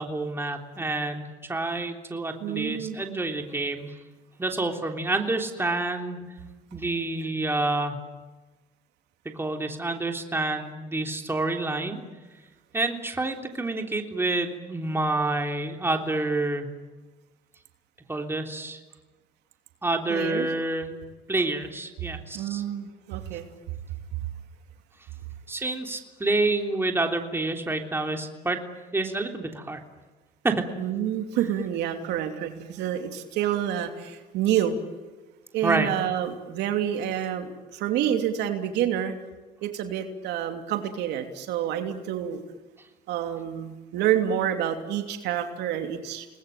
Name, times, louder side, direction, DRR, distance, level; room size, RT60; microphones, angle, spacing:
voice 1, 0.0-3.9 4.4-6.2 6.7-8.0 9.3-12.0 12.7-16.7 18.1-18.8 19.8-21.0 21.3-22.6 25.5-28.6 28.9-29.8 30.4-30.7 35.6-35.9, right 2 dB, 15° right, 3 dB, 3.4 m, -28 dB
voice 2, 2.4-3.0 20.1-20.5 22.3-23.4 30.8-34.8 35.5-39.2 39.6-42.4 43.1-46.3, right 10 dB, 85° right, 5 dB, 3.0 m, -28 dB
30.0 x 20.0 x 9.2 m, 1.2 s
cardioid pair, 110°, 17 cm